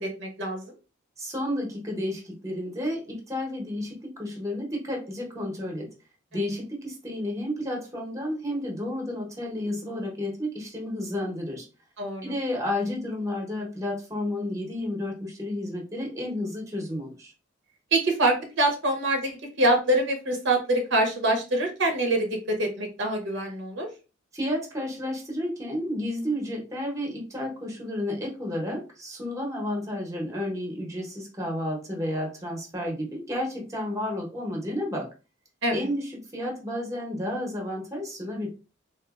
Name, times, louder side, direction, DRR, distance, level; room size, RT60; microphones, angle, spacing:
voice 1, 0.0-0.7 6.3-6.4 12.0-12.2 17.9-23.9 35.6-35.8, right 1 dB, 65° right, 3 dB, 0.8 m, -25 dB
voice 2, 1.2-5.9 6.3-11.7 12.2-17.3 24.3-35.1 35.7-38.5, left 1 dB, 15° right, 0 dB, 0.9 m, -31 dB
3.8 x 2.6 x 2.4 m, 0.32 s
head